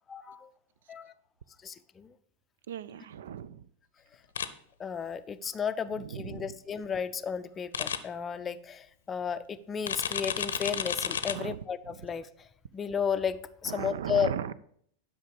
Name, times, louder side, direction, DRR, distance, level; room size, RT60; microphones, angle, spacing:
voice 1, 0.1-0.5 0.9-1.1 1.6-2.1 4.8-12.3 12.7-13.4 13.6-14.3, left 7 dB, 20° left, 11 dB, 0.5 m, -33 dB
voice 2, 2.7-3.7 5.9-6.6 11.3-12.0 13.7-14.5, right 9 dB, 60° right, 18 dB, 0.4 m, -38 dB
sound 1, 4.4-4.5 7.7-8.0 9.9-11.3, left 8 dB, 65° left, 0.7 m, -31 dB
11.0 x 6.0 x 5.1 m, 0.64 s
figure-of-eight pair, 90°, 0 cm